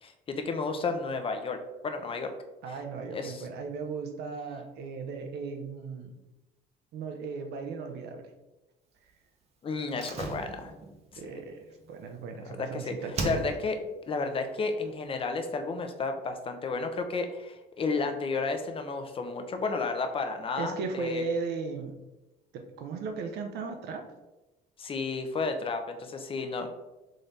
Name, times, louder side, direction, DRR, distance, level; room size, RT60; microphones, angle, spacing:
voice 1, 0.0-1.6 1.8-2.3 2.7-2.8 3.1-3.5 9.6-10.7 12.5-12.9 13.2-13.8 14.1-21.3 24.8-26.7, left 4 dB, 30° left, 6 dB, 0.6 m, -32 dB
voice 2, 2.6-6.2 6.9-8.3 11.2-13.4 20.6-22.0 22.5-24.1, right 4 dB, 75° right, 5 dB, 0.8 m, -36 dB
Slam, 9.9-12.7 13.1-13.9 14.2-14.3, right 2 dB, 40° right, 0.8 m, -38 dB
3.8 x 3.3 x 4.0 m, 1.0 s
cardioid pair, 110°, 17 cm